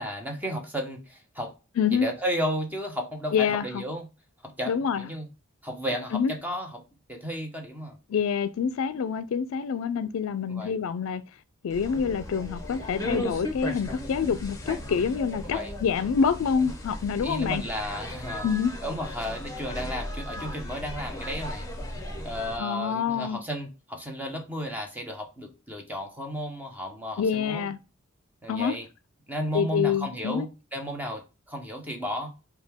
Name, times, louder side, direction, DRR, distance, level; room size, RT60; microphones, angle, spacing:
voice 1, 0.0-1.5 2.0-4.1 4.4-5.3 5.6-6.8 7.1-8.0 10.5-10.7 15.4-15.7 17.2-18.5 18.8-21.7 22.2-27.7 28.4-28.8 29.3-32.3, equal, 10° right, 0.8 m, -33 dB
voice 2, 1.8-2.1 3.3-3.8 4.7-5.1 6.1-6.3 8.1-11.2 11.6-17.6 18.4-18.7 22.6-23.4 27.2-27.8 28.5-28.8 29.5-30.5, left 6 dB, 85° left, 0.4 m, -26 dB
sound 1, 11.7-22.6, left 1 dB, 15° left, 1.0 m, -36 dB
5.0 x 2.3 x 3.4 m
head